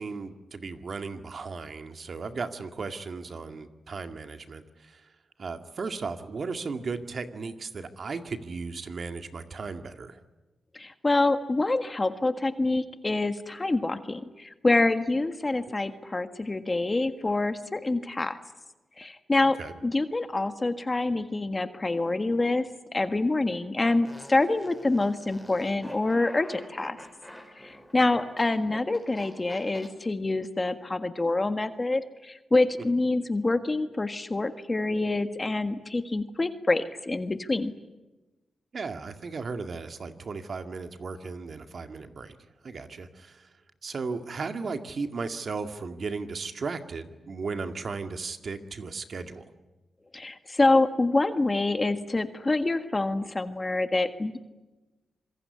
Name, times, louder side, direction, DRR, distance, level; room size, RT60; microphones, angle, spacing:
voice 1, 0.0-5.1 5.4-10.2 15.7-15.8 19.6-19.7 32.8-32.9 38.7-42.4 42.6-43.5 43.8-49.5, right 4 dB, 55° right, 7 dB, 2.0 m, -36 dB
voice 2, 10.7-18.4 19.0-19.6 19.8-27.0 27.6-37.7 50.1-54.4, left 2 dB, 30° left, 9 dB, 1.6 m, -26 dB
Fart, 23.8-29.9, equal, ahead, 5.6 m, -47 dB
25.5 x 22.5 x 9.8 m, 1.1 s
cardioid pair, 65°, 0 cm